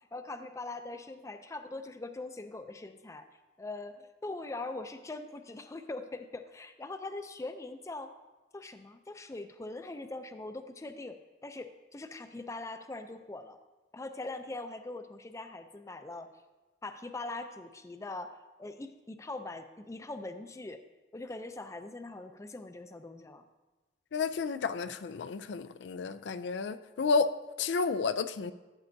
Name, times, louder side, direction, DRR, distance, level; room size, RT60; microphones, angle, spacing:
voice 1, 0.1-3.3 3.6-8.1 8.5-11.2 11.4-13.6 13.9-16.3 16.8-20.8 21.1-23.4, left 2 dB, 15° left, 8 dB, 0.4 m, -42 dB
voice 2, 24.1-28.5, left 4 dB, 85° left, 12 dB, 0.4 m, -31 dB
12.5 x 8.4 x 2.7 m, 1.2 s
head